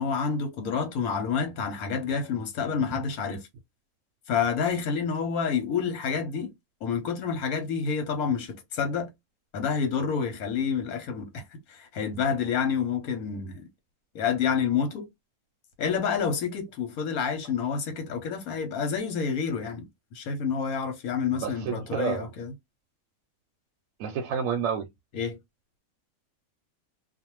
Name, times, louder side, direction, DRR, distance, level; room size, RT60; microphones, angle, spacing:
voice 1, 0.0-3.4 4.3-6.5 6.8-9.1 9.5-11.4 11.7-13.7 14.1-15.1 15.8-19.9 20.1-22.5 25.1-25.4, left 6 dB, 80° left, 1.3 m, -28 dB
voice 2, 21.3-22.2 24.0-24.9, right 7 dB, 70° right, 0.9 m, -30 dB
2.5 x 2.3 x 2.9 m
omnidirectional pair, 1.5 m